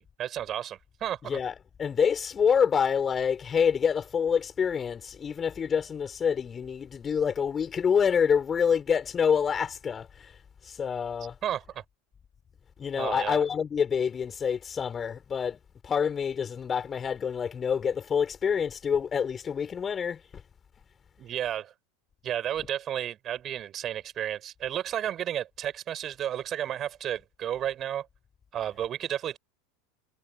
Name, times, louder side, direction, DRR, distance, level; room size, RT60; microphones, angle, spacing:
voice 1, 0.0-1.4 11.4-11.8 13.0-13.4 21.2-21.7 22.2-28.1 28.5-29.4, right 10 dB, 35° right, 6.5 m, -32 dB
voice 2, 1.2-10.4 10.6-11.4 12.8-15.6 15.8-20.4, left 7 dB, 25° left, 5.0 m, -27 dB
figure-of-eight pair, 80°, 0 cm